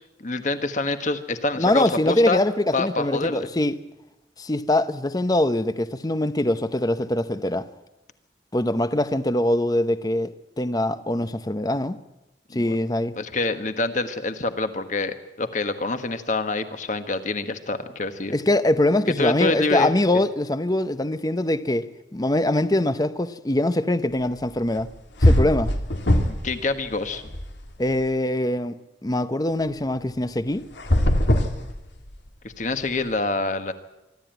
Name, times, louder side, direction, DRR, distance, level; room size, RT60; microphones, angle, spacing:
voice 1, 0.2-2.4 2.7-3.5 12.5-12.7 13.2-18.4 19.2-19.9 26.2-27.4 32.4-33.7, left 2 dB, 45° left, 9 dB, 1.4 m, -26 dB
voice 2, 1.6-3.7 4.4-7.7 8.5-12.0 12.5-13.2 18.3-21.9 22.1-24.9 25.2-25.7 27.8-28.7 29.0-30.6, left 1 dB, 20° left, 12 dB, 0.8 m, -23 dB
sound 1, 24.8-24.9 25.2-26.5 26.9-28.0 30.7-32.3, left 1 dB, 90° left, 2.3 m, -21 dB
25.0 x 13.0 x 9.1 m, 0.96 s
head